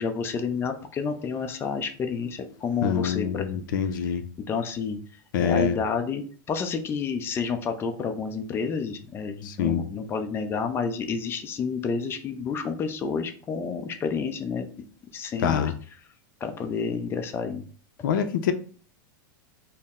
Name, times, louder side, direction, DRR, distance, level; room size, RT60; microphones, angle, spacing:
voice 1, 0.0-3.6 4.0-4.1 4.5-5.0 5.4-14.7 15.1-15.7 16.4-17.6, left 5 dB, 20° left, 0.5 m, -30 dB
voice 2, 2.8-4.2 5.3-5.8 9.5-9.8 15.4-15.7 18.0-18.5, left 8 dB, 75° left, 0.5 m, -25 dB
4.3 x 2.0 x 3.6 m
supercardioid pair, 130°, 11 cm